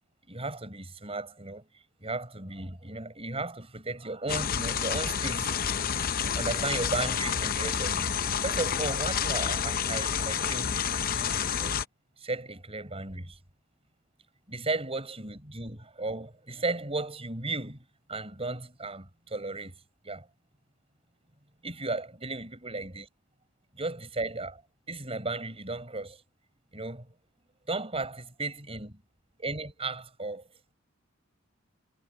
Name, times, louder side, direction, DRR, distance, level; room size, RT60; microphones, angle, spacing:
voice 1, 0.3-1.7 2.0-5.5 6.0-11.7 12.2-13.4 14.5-19.8 20.0-20.3 21.6-23.1 23.7-24.6 24.9-26.2 26.7-27.1 27.7-29.0 29.4-30.4, right 2 dB, 30° right, 6.1 m, -35 dB
sound 1, 4.3-11.8, left 7 dB, 45° left, 0.7 m, -29 dB
head